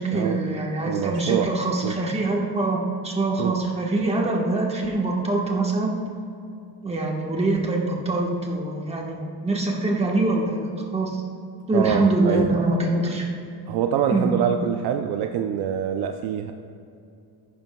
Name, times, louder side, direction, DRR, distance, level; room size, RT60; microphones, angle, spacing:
voice 1, 0.0-5.9 6.8-11.2 11.7-13.3 14.1-14.3, right 2 dB, 15° right, -1 dB, 1.3 m, -24 dB
voice 2, 0.8-1.5 1.8-1.9 3.4-3.6 11.7-12.5 13.7-16.5, right 8 dB, 65° right, 6 dB, 0.6 m, -25 dB
14.5 x 11.5 x 2.3 m, 2.6 s
cardioid pair, 160°, 41 cm